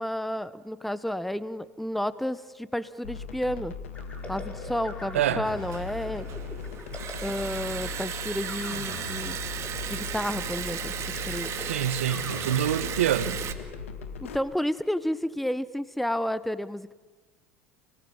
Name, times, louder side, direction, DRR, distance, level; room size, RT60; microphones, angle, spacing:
voice 1, 0.0-3.7 4.3-6.3 7.2-9.4 9.9-10.9 11.3-11.5 14.3-16.9, equal, ahead, 1.1 m, -31 dB
sound 1, 3.0-14.4, left 6 dB, 85° left, 2.1 m, -39 dB
sound 2, 3.9-14.5, left 1 dB, 15° left, 5.6 m, -45 dB
voice 2, 5.1-5.5 11.6-13.4, right 11 dB, 85° right, 1.4 m, -26 dB
Liquid, 5.5-13.5, right 10 dB, 45° right, 2.3 m, -36 dB
28.5 x 20.0 x 8.9 m
hypercardioid pair, 85°, 7 cm